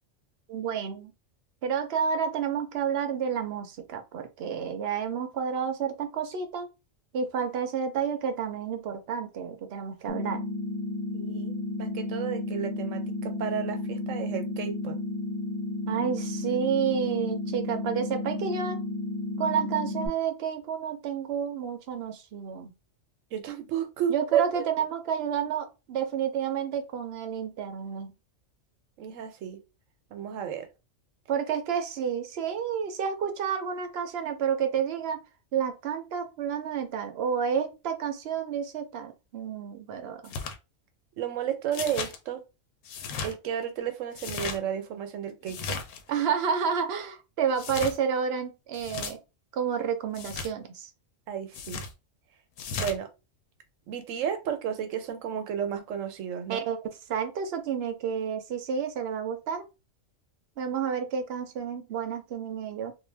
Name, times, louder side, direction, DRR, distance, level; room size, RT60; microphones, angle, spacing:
voice 1, 0.5-1.1 1.6-6.7 7.1-10.4 15.9-18.8 19.4-22.7 24.1-28.1 31.3-35.2 35.5-40.3 46.1-49.2 49.5-50.9 56.5-59.7 60.6-62.9, right 7 dB, 60° right, 0.8 m, -30 dB
sound 1, 10.1-20.1, left 2 dB, 30° left, 0.8 m, -33 dB
voice 2, 11.1-11.5 11.8-15.0 23.3-24.7 29.0-29.6 30.1-30.7 41.2-42.4 43.2-45.8 51.3-51.8 52.8-53.1 53.9-56.7, right 9 dB, 85° right, 1.0 m, -32 dB
sound 2, 40.2-40.6 41.7-42.2 42.8-43.3 44.1-44.6 45.5-46.0 47.6-48.0 48.7-49.1 50.1-50.5 51.5-51.9 52.6-53.0, left 5 dB, 85° left, 1.0 m, -35 dB
2.5 x 2.2 x 3.2 m
omnidirectional pair, 1.3 m